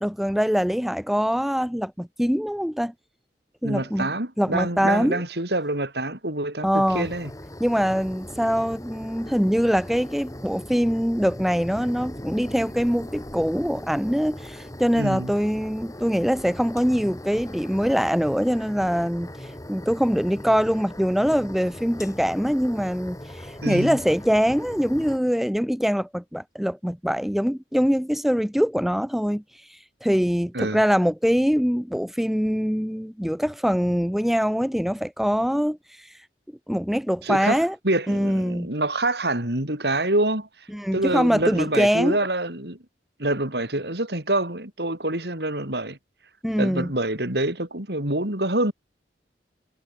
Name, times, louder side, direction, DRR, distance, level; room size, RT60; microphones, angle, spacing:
voice 1, 0.0-2.9 3.6-4.1 4.4-5.2 6.6-7.1 7.6-29.4 29.7-36.1 36.7-37.8 38.1-38.7 40.7-42.2 46.4-46.9, equal, ahead, 0.8 m, -23 dB
voice 2, 3.6-7.3 15.0-15.3 23.6-24.0 30.5-30.8 37.2-37.6 37.8-40.5 40.9-42.8 43.2-46.0 46.6-48.7, right 1 dB, 65° right, 5.5 m, -26 dB
sound 1, 6.9-25.2, left 1 dB, 20° left, 5.3 m, -39 dB
head